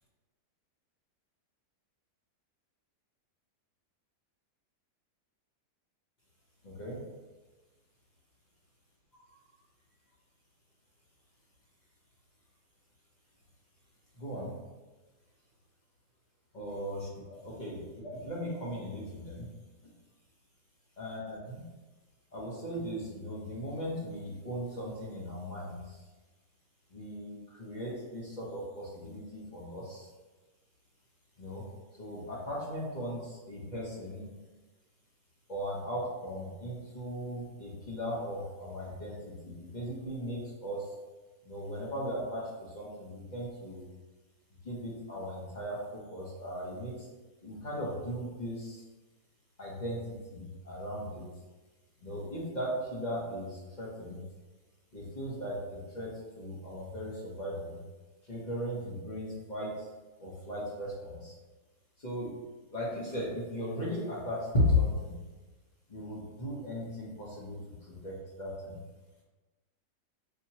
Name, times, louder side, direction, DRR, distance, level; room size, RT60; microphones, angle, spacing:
voice 1, 6.6-7.0 9.3-9.4 14.1-14.5 16.5-19.5 19.8-19.9 21.0-21.7 22.3-26.0 26.9-30.1 31.4-31.6 32.0-34.3 35.5-40.9 41.4-43.8 44.6-47.1 47.4-48.8 49.6-51.3 52.0-54.2 54.9-57.8 58.2-59.9 60.2-61.3 62.0-62.3 62.7-65.2 65.9-68.8, left 1 dB, 35° left, -5 dB, 0.8 m, -37 dB
4.6 x 2.9 x 2.8 m, 1.2 s
omnidirectional pair, 1.8 m